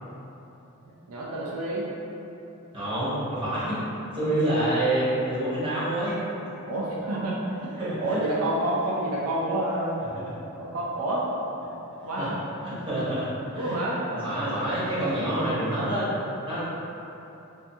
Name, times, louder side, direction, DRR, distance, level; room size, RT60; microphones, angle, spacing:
voice 1, 1.1-1.9 6.7-9.9 10.6-11.3 12.0-12.4 13.5-14.0, right 1 dB, 80° right, -5 dB, 0.4 m, -28 dB
voice 2, 2.7-3.8 4.1-6.2 7.8-8.2 12.2-12.3 12.6-13.8 14.1-16.1 16.5-16.6, right 1 dB, 20° right, -12 dB, 0.8 m, -27 dB
2.5 x 2.3 x 2.7 m, 2.9 s
head